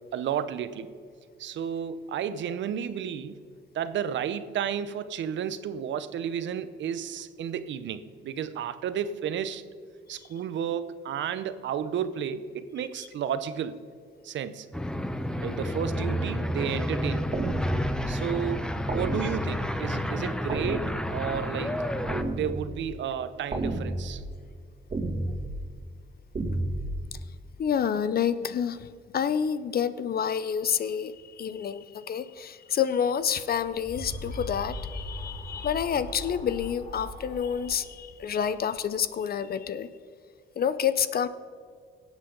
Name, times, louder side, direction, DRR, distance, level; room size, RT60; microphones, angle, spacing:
voice 1, 0.1-0.9 1.4-3.4 3.7-9.6 10.1-13.8 14.2-14.7 15.4-17.3 18.1-21.7 22.3-24.2, right 8 dB, 70° right, 13 dB, 0.7 m, -32 dB
sound 1, 14.7-22.2, equal, 5° left, 0.7 m, -30 dB
sound 2, 17.3-18.1 18.9-19.7 20.5-21.3 22.1-22.9 23.5-24.3 24.9-25.5 26.3-26.9, right 2 dB, 30° right, 2.3 m, -31 dB
voice 2, 27.6-28.9 29.1-39.9 40.6-41.3, left 8 dB, 50° left, 14 dB, 0.6 m, -28 dB
sound 3, 33.4-39.0, left 1 dB, 35° left, 2.2 m, -40 dB
18.0 x 8.2 x 3.9 m, 2.1 s
cardioid pair, 90°, 20 cm